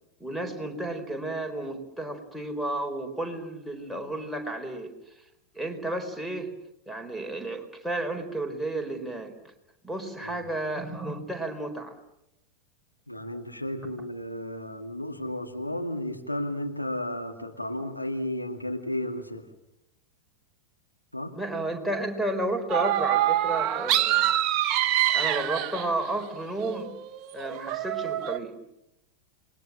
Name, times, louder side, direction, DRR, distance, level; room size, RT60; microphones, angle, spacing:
voice 1, 0.2-4.9 5.5-6.5 6.9-9.3 9.8-11.9 21.3-24.4 25.1-26.9 27.3-28.5, right 1 dB, ahead, 8 dB, 4.3 m, -32 dB
voice 2, 13.1-19.5 21.1-21.3, left 1 dB, 85° left, 4 dB, 2.2 m, -33 dB
sound 1, 22.7-26.1 26.6-28.4, right 13 dB, 40° right, 1.1 m, -26 dB
29.0 x 21.5 x 7.4 m, 0.84 s
figure-of-eight pair, 90°, 0 cm